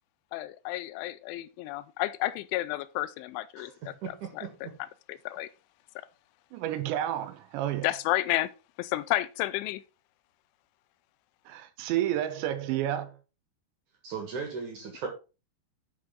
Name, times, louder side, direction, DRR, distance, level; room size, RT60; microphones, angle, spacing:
voice 1, 0.3-4.7 5.1-5.5 7.8-8.5 8.8-9.8, left 16 dB, 90° left, 3.0 m, -31 dB
voice 2, 4.0-4.7 14.0-15.1, right 5 dB, 60° right, 2.2 m, -37 dB
voice 3, 6.5-7.9 11.5-13.2, right 12 dB, 80° right, 2.9 m, -30 dB
10.0 x 5.8 x 3.8 m
omnidirectional pair, 5.4 m